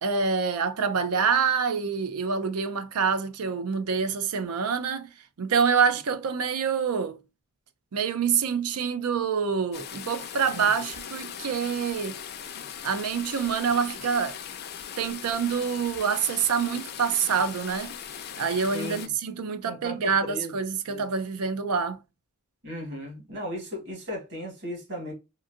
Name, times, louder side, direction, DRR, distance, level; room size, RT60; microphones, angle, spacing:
voice 1, 0.0-5.1 5.4-7.2 7.9-12.2 12.8-14.4 15.0-17.9 18.4-22.0, right 6 dB, 90° right, 0.5 m, -26 dB
sound 1, 9.7-19.1, left 8 dB, 45° left, 0.4 m, -39 dB
voice 2, 18.7-19.1 19.6-20.5 20.8-21.0 22.6-25.1, left 1 dB, 55° right, 1.6 m, -36 dB
2.9 x 2.6 x 2.4 m
head